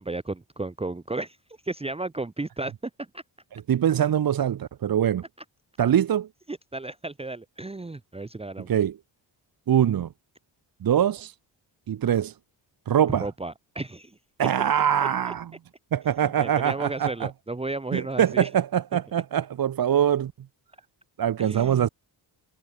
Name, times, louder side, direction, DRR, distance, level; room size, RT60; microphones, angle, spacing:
voice 1, 0.0-1.4 1.6-2.7 3.0-3.2 6.5-8.7 13.2-14.2 15.2-15.3 16.4-18.5 18.9-19.0 21.4-21.9, right 2 dB, 15° right, 1.1 m, -33 dB
voice 2, 3.5-5.2 5.8-6.3 8.7-9.0 9.7-10.1 10.8-11.3 11.9-12.3 12.9-13.3 14.4-15.5 15.9-17.3 17.9-20.3 21.2-21.9, right 9 dB, 50° right, 0.9 m, -23 dB
wide cardioid pair, 140°, 43 cm